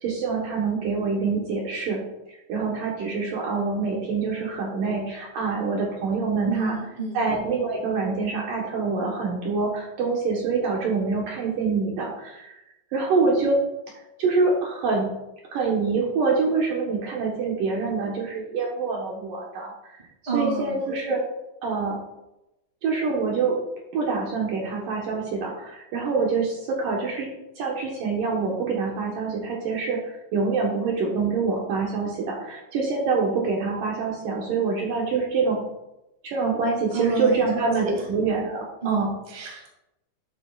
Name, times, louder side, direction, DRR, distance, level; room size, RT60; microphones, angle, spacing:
voice 1, 0.0-2.0 2.5-6.8 7.1-12.6 12.9-13.6 13.9-15.1 15.5-19.7 20.2-21.2 21.6-22.0 22.8-23.6 23.9-27.3 27.6-35.6 36.2-39.1, right 4 dB, 65° right, -2 dB, 2.4 m, -25 dB
voice 2, 6.4-7.2 20.3-20.8 36.9-37.6 38.8-39.7, right 4 dB, 20° right, -2 dB, 1.6 m, -30 dB
11.5 x 8.1 x 2.4 m, 0.91 s
omnidirectional pair, 4.8 m